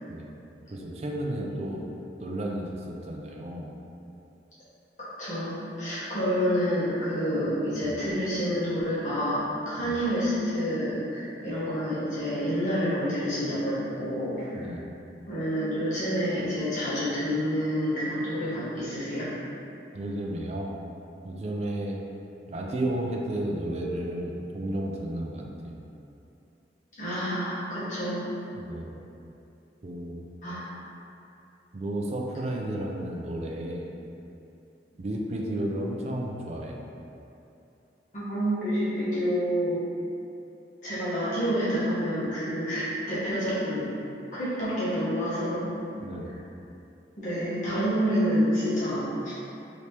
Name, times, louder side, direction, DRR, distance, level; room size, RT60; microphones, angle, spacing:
voice 1, 0.7-1.8 2.2-3.7 7.8-8.0 9.8-10.0 14.5-14.9 19.9-20.7 21.2-22.0 22.5-25.8 28.6-29.0 29.8-30.2 31.7-33.9 35.0-36.9 46.0-46.4, right 1 dB, 35° right, -1 dB, 0.3 m, -33 dB
voice 2, 5.0-14.6 15.3-19.3 27.0-28.2 30.4-30.7 38.1-39.8 40.8-43.9 44.3-45.8 47.2-49.3, equal, 45° left, -12 dB, 1.1 m, -28 dB
3.3 x 2.9 x 2.9 m, 2.7 s
head